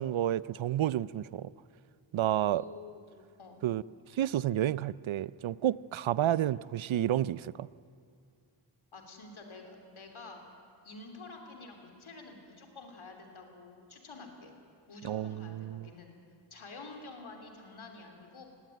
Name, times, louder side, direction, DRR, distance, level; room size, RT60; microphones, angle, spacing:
voice 1, 0.0-1.5 2.1-2.6 3.6-3.8 4.1-7.7 15.0-15.9, right 12 dB, 70° right, 19 dB, 0.6 m, -30 dB
voice 2, 2.5-3.6 8.9-10.5 10.8-14.5 14.9-16.1 16.5-18.4, left 3 dB, 75° left, 3 dB, 3.5 m, -49 dB
20.0 x 17.0 x 9.1 m, 2.3 s
cardioid pair, 65°, 49 cm